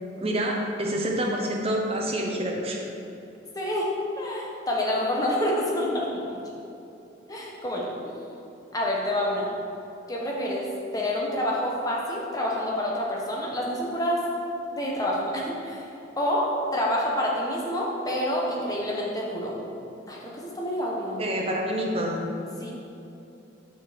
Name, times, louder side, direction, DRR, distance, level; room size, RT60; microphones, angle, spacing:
voice 1, 0.2-2.8 21.2-22.2, right 1 dB, 30° right, 0 dB, 0.8 m, -27 dB
voice 2, 3.5-3.9 4.2-6.4 7.3-8.2 8.7-9.5 10.1-10.7 10.9-14.2 14.7-15.9 16.1-19.5 20.1-21.4 22.6-22.7, left 1 dB, 20° left, -3 dB, 1.0 m, -28 dB
6.6 x 4.5 x 5.1 m, 2.9 s
head